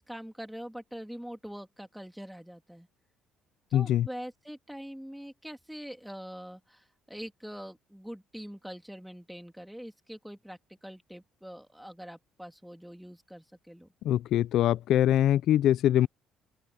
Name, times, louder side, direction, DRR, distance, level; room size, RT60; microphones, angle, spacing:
voice 1, 0.0-2.9 3.7-13.9, equal, ahead, 3.0 m, -44 dB
voice 2, 3.7-4.1 14.0-16.1, left 12 dB, 65° left, 0.5 m, -23 dB
open air
cardioid pair, 110°, 0 cm